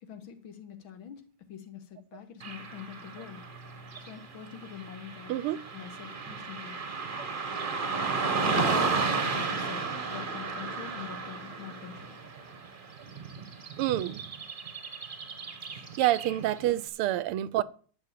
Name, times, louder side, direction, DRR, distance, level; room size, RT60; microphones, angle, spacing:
voice 1, 0.0-3.5 4.0-5.3 5.7-6.8 8.4-12.2, left 8 dB, 65° left, 2.1 m, -44 dB
Car passing by / Traffic noise roadway noise, 2.4-16.7, right 4 dB, 30° right, 1.0 m, -34 dB
voice 2, 13.8-14.2 16.0-17.6, right 14 dB, 90° right, 1.6 m, -27 dB
11.5 x 4.9 x 8.4 m
omnidirectional pair, 2.4 m